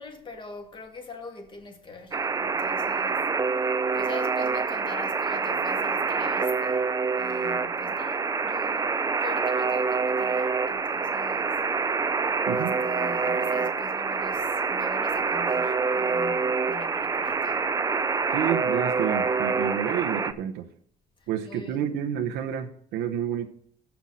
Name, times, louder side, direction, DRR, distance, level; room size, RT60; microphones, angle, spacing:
voice 1, 0.0-3.3 3.6-11.6 12.5-17.7 21.2-21.9, left 3 dB, 30° left, 2.1 m, -43 dB
Alarm, 2.1-20.3, right 4 dB, 20° right, 0.5 m, -26 dB
voice 2, 18.3-20.7 21.3-23.5, right 9 dB, 90° right, 0.9 m, -29 dB
7.0 x 6.1 x 7.5 m
cardioid pair, 110°, 17 cm